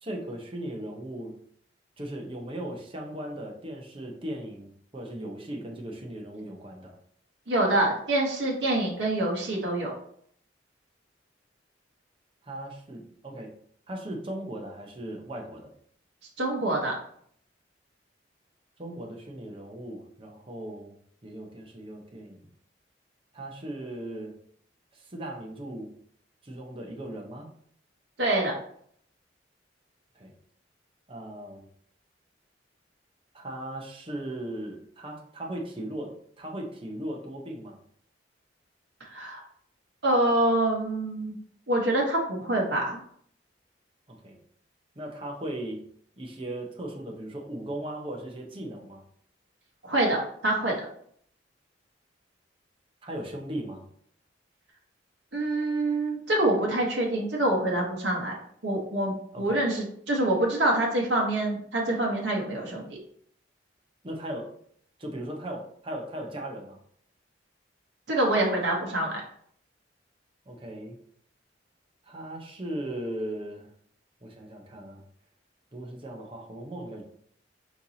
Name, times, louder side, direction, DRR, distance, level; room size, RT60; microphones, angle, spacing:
voice 1, 0.0-1.4 2.0-6.9 12.5-13.5 13.9-15.7 18.8-20.9 21.2-22.5 23.3-24.3 24.9-25.9 26.4-27.5 30.1-30.3 31.1-31.7 33.3-37.8 44.1-44.4 45.0-45.8 46.2-49.0 53.0-53.8 59.3-59.6 64.0-64.5 65.0-66.8 70.5-71.0 72.1-73.7 74.2-75.0 75.7-77.0, right 1 dB, 30° right, 0 dB, 0.8 m, -37 dB
voice 2, 7.5-9.9 16.4-16.9 28.2-28.5 39.1-39.4 40.0-41.3 41.7-43.0 49.8-50.2 50.4-50.7 55.3-58.3 58.6-62.9 68.1-69.2, right 1 dB, 65° right, -2 dB, 1.0 m, -26 dB
4.5 x 4.0 x 2.8 m, 0.63 s
head